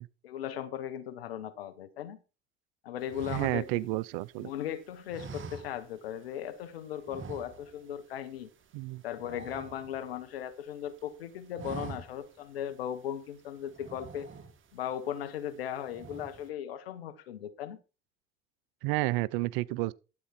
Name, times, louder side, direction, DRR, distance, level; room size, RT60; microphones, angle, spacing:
voice 1, 0.2-2.2 2.8-3.9 4.4-8.5 9.0-14.3 14.7-17.8, left 10 dB, 85° left, 1.3 m, -37 dB
sound 1, 3.1-4.6 5.1-6.2 6.4-6.6 7.0-7.9 8.2-8.4 8.7-10.5 10.9-11.1 11.4-12.4 12.8-12.9 13.7-14.8 15.3-15.6 15.9-16.5, right 5 dB, 45° right, 2.2 m, -44 dB
voice 2, 3.3-4.5 8.7-9.0 18.8-19.9, right 19 dB, 75° right, 0.6 m, -31 dB
12.5 x 8.3 x 4.3 m
hypercardioid pair, 65°, 29 cm